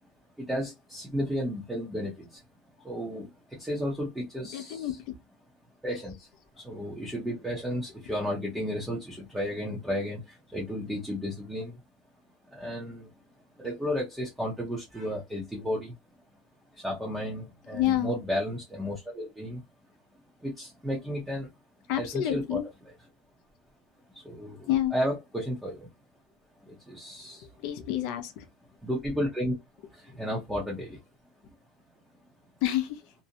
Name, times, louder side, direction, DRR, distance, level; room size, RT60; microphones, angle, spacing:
voice 1, 0.4-2.4 2.8-4.9 5.8-6.3 6.6-11.8 12.5-13.1 13.6-15.9 16.7-19.6 20.4-21.5 22.0-22.6 24.1-25.9 26.7-27.5 28.8-29.6 29.9-31.0, equal, 5° right, 0.6 m, -33 dB
voice 2, 4.5-5.2 17.7-18.1 21.9-22.6 24.7-24.9 27.4-28.5 32.6-33.0, left 12 dB, 55° left, 0.4 m, -29 dB
2.5 x 2.0 x 2.7 m
cardioid pair, 170°, 0 cm